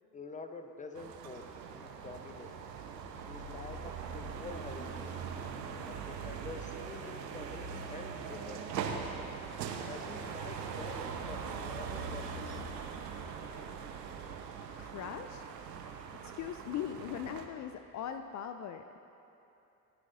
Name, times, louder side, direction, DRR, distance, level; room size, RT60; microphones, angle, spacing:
voice 1, 0.1-1.5 1.7-2.6 3.3-5.2 5.9-9.1 9.8-12.6, left 3 dB, 15° left, 6 dB, 1.0 m, -47 dB
sound 1, 0.9-17.5, right 6 dB, 75° right, 1.2 m, -41 dB
voice 2, 14.8-15.5 16.2-19.0, left 9 dB, 35° left, 8 dB, 0.5 m, -40 dB
27.5 x 9.6 x 2.7 m, 2.9 s
hypercardioid pair, 70°, 49 cm